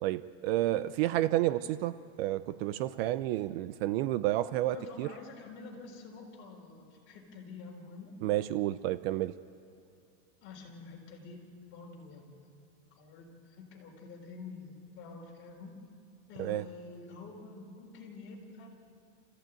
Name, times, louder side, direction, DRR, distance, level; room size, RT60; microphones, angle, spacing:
voice 1, 0.0-5.1 8.2-9.4 16.4-16.6, right 15 dB, 50° right, 15 dB, 0.6 m, -30 dB
voice 2, 4.6-8.1 10.4-11.4 11.7-12.5 12.9-15.8 16.3-18.7, left 4 dB, 30° left, 0 dB, 4.1 m, -48 dB
27.5 x 15.0 x 9.0 m, 2.4 s
supercardioid pair, 175°, 38 cm